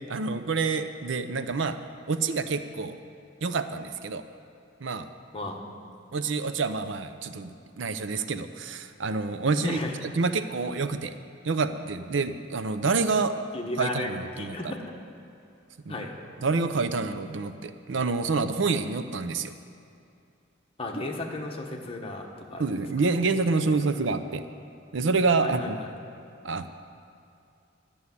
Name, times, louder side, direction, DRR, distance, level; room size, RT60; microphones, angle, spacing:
voice 1, 0.1-1.8 2.1-2.9 3.4-4.2 4.8-5.1 6.1-9.8 10.1-11.1 11.4-13.4 13.8-14.7 15.9-16.0 16.4-19.5 22.6-24.4 24.9-25.8 26.4-26.7, right 4 dB, 65° right, 10 dB, 0.6 m, -27 dB
voice 2, 13.5-14.1 14.4-14.8 15.9-16.1 20.8-22.7 25.4-25.9, left 2 dB, 30° left, 0 dB, 1.4 m, -34 dB
12.0 x 7.1 x 9.6 m, 2.6 s
head